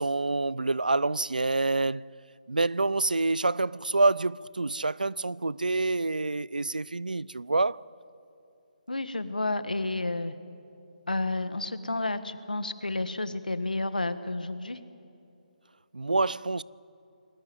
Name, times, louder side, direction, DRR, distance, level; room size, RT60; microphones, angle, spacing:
voice 1, 0.0-2.1 2.5-7.8 15.9-16.6, right 3 dB, 85° right, 0.5 m, -27 dB
voice 2, 8.9-10.3 11.1-14.8, left 2 dB, 85° left, 1.6 m, -31 dB
28.0 x 20.0 x 7.9 m
figure-of-eight pair, 150°, 4 cm